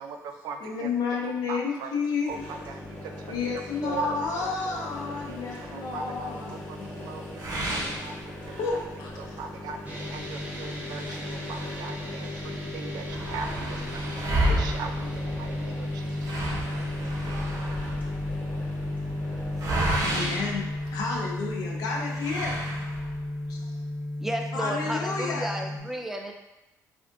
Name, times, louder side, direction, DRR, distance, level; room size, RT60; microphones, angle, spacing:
voice 1, 0.0-0.9 1.2-1.9 2.3-3.5 3.8-4.9 5.3-8.8 9.2-17.5, right 4 dB, 80° right, 5 dB, 0.3 m, -40 dB
voice 2, 0.6-2.3 3.3-7.1 8.6-9.1 20.0-22.7 23.5-23.7 24.5-25.6, left 5 dB, 80° left, 0 dB, 0.6 m, -31 dB
sound 1, 2.3-20.1, left 1 dB, 20° left, 1.1 m, -40 dB
sound 2, 7.4-8.8 9.3-9.4 9.8-9.9 10.7-12.0 12.4-12.5 12.7-21.4 22.1-23.3, right 1 dB, 65° right, 0.7 m, -32 dB
sound 3, 9.8-25.8, left 1 dB, 20° right, 0.7 m, -34 dB
voice 3, 24.2-26.3, right 1 dB, 5° right, 3 dB, 0.3 m, -32 dB
3.4 x 2.4 x 2.5 m, 0.99 s
cardioid pair, 105°, 7 cm